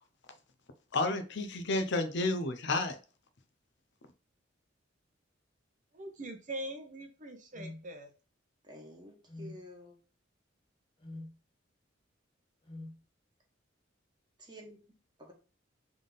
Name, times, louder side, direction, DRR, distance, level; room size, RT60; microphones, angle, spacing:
voice 1, 0.9-3.0, left 2 dB, 65° left, 0.7 m, -31 dB
voice 2, 5.9-8.1, right 1 dB, 40° right, 0.8 m, -42 dB
sound 1, 7.5-7.8 9.3-9.6 11.0-11.3 12.7-13.0, left 2 dB, 25° left, 1.2 m, -44 dB
voice 3, 8.6-9.9 14.4-15.3, equal, 25° right, 1.3 m, -51 dB
3.7 x 3.5 x 3.9 m
head